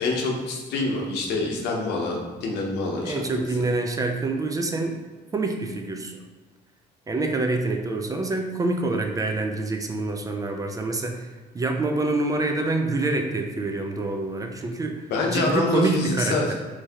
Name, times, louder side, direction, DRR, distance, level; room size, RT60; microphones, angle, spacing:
voice 1, 0.0-3.1 15.1-16.5, left 2 dB, 80° left, 0 dB, 0.8 m, -26 dB
voice 2, 3.0-5.0 5.3-6.2 7.1-15.0 15.3-16.5, right 2 dB, 20° right, 3 dB, 0.3 m, -26 dB
3.2 x 2.6 x 3.5 m, 1.3 s
cardioid pair, 110°, 17 cm